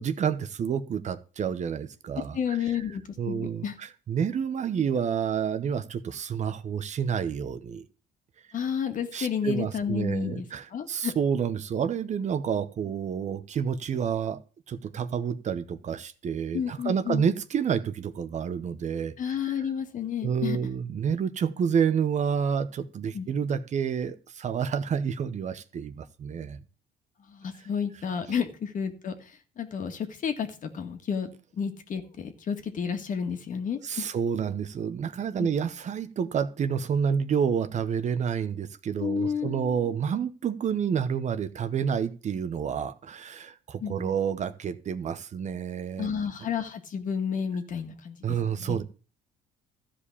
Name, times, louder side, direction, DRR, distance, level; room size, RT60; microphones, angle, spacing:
voice 1, 0.0-2.6 3.2-7.8 9.1-14.4 14.7-19.3 20.2-26.6 28.3-28.4 33.8-46.1 48.2-48.8, right 7 dB, 45° right, 11 dB, 1.0 m, -29 dB
voice 2, 2.3-3.8 8.5-11.1 16.5-17.3 19.2-20.6 23.1-23.3 27.3-29.3 29.6-34.1 35.4-35.5 39.0-39.9 43.8-44.2 46.0-48.8, left 7 dB, 50° left, 7 dB, 1.9 m, -31 dB
13.5 x 5.1 x 8.5 m, 0.36 s
cardioid pair, 110°, 17 cm